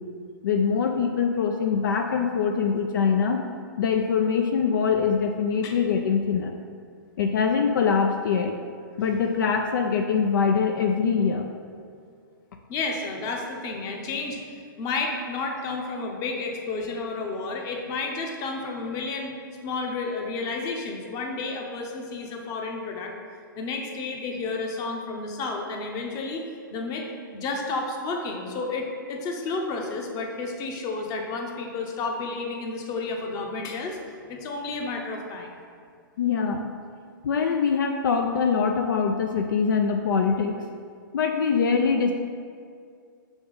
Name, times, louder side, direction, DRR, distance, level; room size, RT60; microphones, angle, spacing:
voice 1, 0.4-3.4 3.8-6.6 7.2-8.5 9.0-11.5 36.2-36.7 37.2-40.6 41.1-42.1, left 6 dB, 65° left, 3 dB, 0.5 m, -23 dB
voice 2, 12.7-19.4 19.6-23.1 23.6-26.4 26.7-27.1 27.3-34.0 34.3-35.5, left 3 dB, 30° left, 2 dB, 0.9 m, -31 dB
5.9 x 3.6 x 5.4 m, 2.3 s
hypercardioid pair, 120°, 11 cm